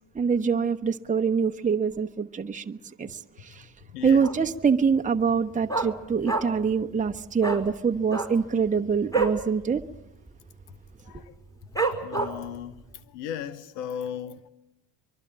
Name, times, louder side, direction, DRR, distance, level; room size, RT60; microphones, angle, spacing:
voice 1, 0.1-3.6 4.0-9.8 11.1-11.2, right 6 dB, 15° right, 1.0 m, -25 dB
voice 2, 3.9-4.2 11.1-11.3 11.9-12.8 13.1-14.5, left 9 dB, 90° left, 1.1 m, -36 dB
Dog, 4.2-4.6 4.9-5.0 5.3-6.7 7.0-7.1 7.4-7.6 8.0-9.4 9.8-10.0 10.2-10.6 11.1-11.2 11.8-12.6 13.0-13.1, right 3 dB, 5° left, 5.3 m, -28 dB
24.0 x 22.5 x 7.4 m
supercardioid pair, 70°, 47 cm